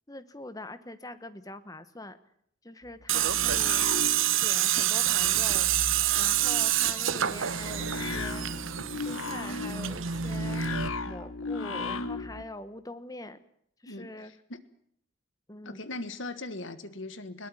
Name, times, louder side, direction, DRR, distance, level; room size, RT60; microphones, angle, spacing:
voice 1, 0.1-2.2 2.6-3.9 4.4-5.7 6.2-8.5 9.0-10.6 11.0-13.4 13.8-14.3 15.5-15.8, left 2 dB, 20° left, 12 dB, 1.1 m, -43 dB
sound 1, 2.9-4.7 5.0-12.4, left 3 dB, 90° left, 1.3 m, -37 dB
Tools, 3.1-10.9, right 11 dB, 85° right, 1.0 m, -27 dB
voice 2, 13.8-14.6 15.6-17.5, left 2 dB, 75° left, 12 dB, 1.7 m, -39 dB
21.0 x 18.0 x 8.9 m, 0.68 s
head